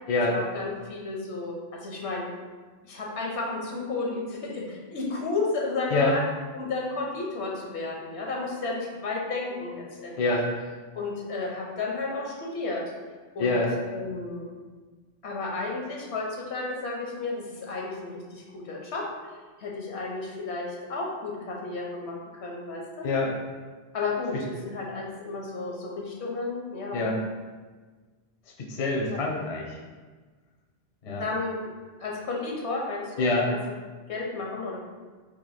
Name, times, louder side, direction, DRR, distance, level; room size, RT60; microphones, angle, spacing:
voice 1, 0.3-2.3 2.8-6.2 6.5-10.2 10.9-12.8 13.3-13.6 13.9-14.5 15.2-19.1 19.6-23.1 23.9-27.0 29.1-29.3 31.2-31.6 32.0-33.6 34.1-34.8, left 3 dB, 85° left, -2 dB, 1.0 m, -32 dB
voice 2, 10.2-10.5 13.4-13.7 23.0-23.3 24.3-24.4 26.9-27.2 28.6-29.8 31.0-31.2 33.2-33.5, left 2 dB, 45° left, -1 dB, 0.5 m, -25 dB
2.9 x 2.5 x 4.1 m, 1.4 s
omnidirectional pair, 1.1 m